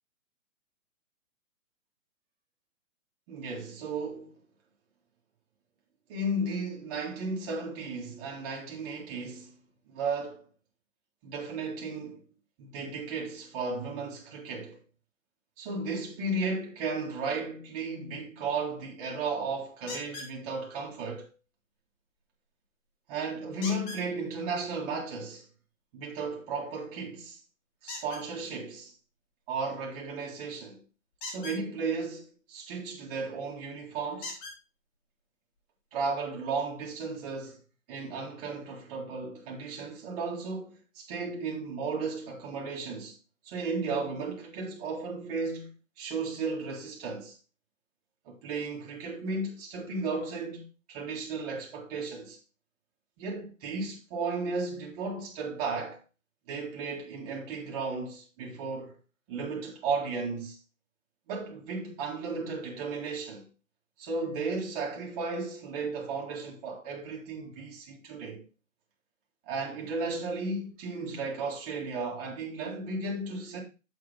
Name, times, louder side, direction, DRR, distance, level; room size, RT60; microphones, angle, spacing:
voice 1, 3.3-4.4 6.1-9.6 9.9-10.4 11.2-12.2 12.6-14.8 15.6-21.3 23.1-25.5 25.9-27.4 27.8-28.9 29.5-30.8 31.3-34.4 35.9-37.6 37.9-43.2 43.4-45.7 46.0-47.4 48.3-52.4 53.2-56.0 56.5-59.0 59.3-60.6 61.3-63.5 64.0-68.4 69.4-73.6, right 3 dB, 25° right, 2.4 m, -34 dB
sound 1, 19.9-20.3 23.6-24.0 27.9-28.2 31.1-31.6 33.3-33.4 34.2-34.6 35.6-35.7 36.1-36.2, left 3 dB, 20° left, 1.6 m, -39 dB
7.6 x 6.5 x 3.6 m
hypercardioid pair, 150°, 41 cm